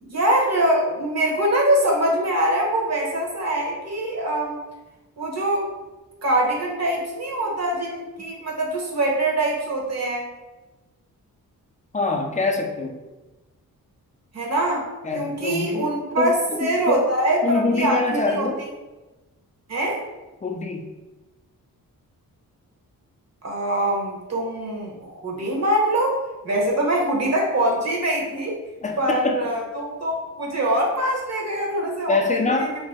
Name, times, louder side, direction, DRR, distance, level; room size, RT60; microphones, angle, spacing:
voice 1, 0.0-4.6 5.2-5.7 6.2-10.3 14.3-14.9 15.1-16.3 16.6-18.7 19.7-20.0 23.4-28.6 29.0-32.2 32.6-32.7, right 1 dB, 45° right, -2 dB, 1.0 m, -23 dB
voice 2, 11.9-13.0 15.0-15.9 16.2-17.0 17.4-18.6 20.4-20.9 28.8-29.4 32.1-32.7, left 3 dB, 20° left, 2 dB, 0.4 m, -24 dB
2.9 x 2.7 x 3.5 m, 1.1 s
wide cardioid pair, 110°, 36 cm